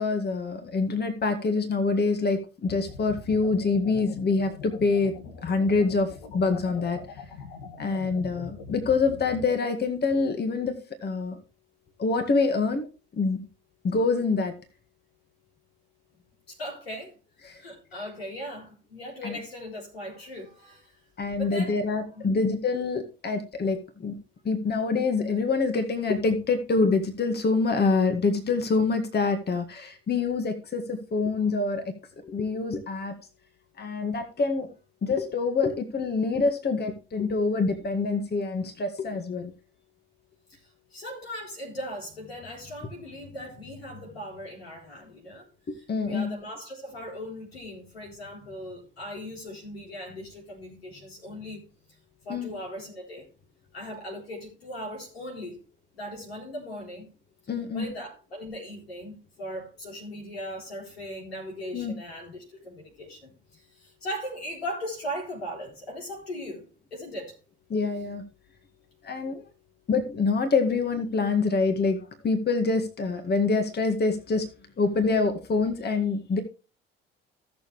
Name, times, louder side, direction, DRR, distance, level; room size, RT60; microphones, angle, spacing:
voice 1, 0.0-5.1 5.4-7.0 7.8-10.7 11.0-11.4 12.0-12.9 13.1-13.4 13.8-14.5 17.5-17.6 19.2-19.4 21.2-24.1 24.4-31.8 32.2-33.1 33.8-34.7 35.0-39.5 45.7-46.3 52.3-52.5 57.5-57.9 61.7-61.9 67.7-68.2 69.0-69.4 69.9-72.0 72.2-74.5 74.8-76.4, left 4 dB, 35° left, 1.9 m, -26 dB
Weird Undulating Sub-Bass, 2.7-9.5, left 5 dB, 75° left, 1.7 m, -42 dB
voice 2, 16.5-17.1 17.4-21.0 21.3-21.8 22.1-22.4 40.5-45.5 45.7-51.6 51.9-52.0 52.2-53.3 53.7-55.6 55.9-57.1 57.7-67.4, equal, 90° left, 4.0 m, -39 dB
16.0 x 6.9 x 3.2 m
hypercardioid pair, 55°, 30 cm